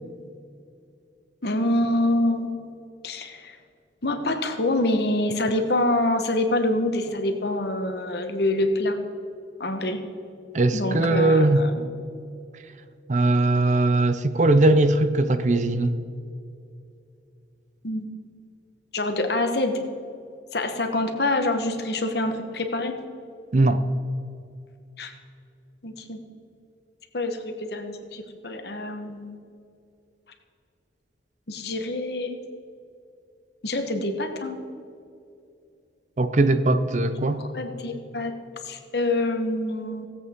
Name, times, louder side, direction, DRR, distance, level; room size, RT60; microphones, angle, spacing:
voice 1, 1.4-2.5 3.0-3.6 4.0-9.0 9.6-10.0 10.7-11.9 17.8-18.1 18.9-19.7 20.5-22.9 25.0-25.1 25.8-26.2 27.1-29.4 31.5-32.4 33.6-34.6 37.4-38.3 38.6-40.1, left 1 dB, 60° left, 6 dB, 1.1 m, -26 dB
voice 2, 10.5-11.7 13.1-16.0 23.5-23.8 36.2-37.4, right 2 dB, 40° right, 11 dB, 0.5 m, -20 dB
17.0 x 8.2 x 3.7 m, 2.5 s
head